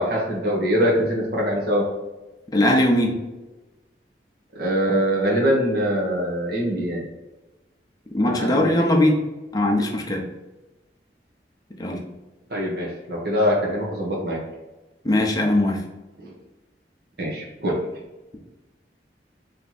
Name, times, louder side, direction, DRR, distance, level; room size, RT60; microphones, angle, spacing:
voice 1, 0.0-1.8 4.5-7.0 8.2-8.7 12.5-14.4 16.2-16.3 17.2-17.8, equal, 60° right, -3 dB, 1.3 m, -23 dB
voice 2, 2.5-3.2 8.1-9.2 9.5-10.2 11.8-12.0 15.0-15.8, left 1 dB, 20° left, 0 dB, 0.7 m, -20 dB
3.4 x 3.0 x 4.1 m, 1.1 s
head